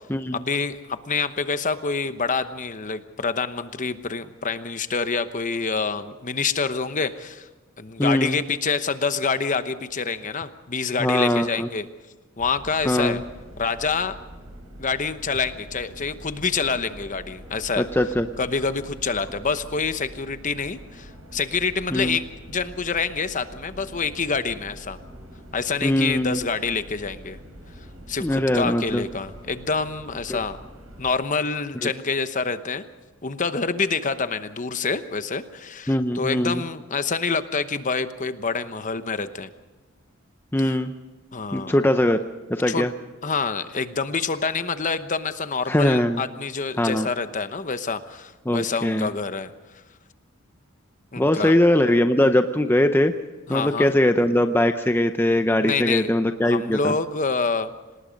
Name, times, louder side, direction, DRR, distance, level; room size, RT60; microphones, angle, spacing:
voice 1, 0.3-7.5 7.8-11.9 12.4-13.2 13.6-14.2 14.8-17.8 18.4-25.0 25.5-27.4 28.1-30.6 31.0-32.8 33.2-39.5 40.6-40.8 41.3-41.8 42.7-42.9 43.2-49.5 51.1-51.5 53.5-53.9 55.6-56.1 56.4-57.7, left 4 dB, 35° left, 11 dB, 1.0 m, -27 dB
voice 2, 8.0-8.4 11.0-11.7 12.9-13.2 17.8-18.3 21.9-22.2 25.8-26.4 28.2-29.0 30.3-30.4 31.8-31.9 35.9-36.6 40.5-40.9 41.5-42.2 42.5-42.9 45.7-46.2 46.8-47.1 48.5-49.1 51.2-53.1 53.5-57.0, left 1 dB, 10° left, 7 dB, 0.6 m, -21 dB
sound 1, 12.4-31.1, equal, 85° right, 5.2 m, -44 dB
26.0 x 19.5 x 5.3 m, 1.2 s
head